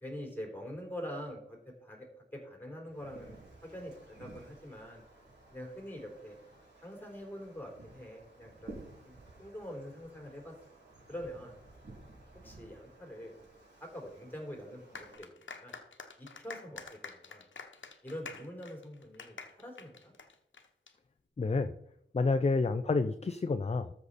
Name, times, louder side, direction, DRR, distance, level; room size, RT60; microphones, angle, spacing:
voice 1, 0.0-5.0 5.5-6.4 6.8-11.6 12.4-13.3 13.8-15.3 15.6-15.8 16.2-17.5 18.0-20.1 22.2-22.3, equal, 10° left, 0 dB, 3.8 m, -45 dB
Wind, 2.8-15.2, right 2 dB, 60° right, 4.9 m, -55 dB
sound 1, 14.9-20.9, left 5 dB, 90° left, 1.1 m, -48 dB
voice 2, 21.4-21.7 22.1-23.9, left 3 dB, 35° left, 10 dB, 0.5 m, -29 dB
13.5 x 6.7 x 4.2 m, 0.78 s
wide cardioid pair, 100°, 19 cm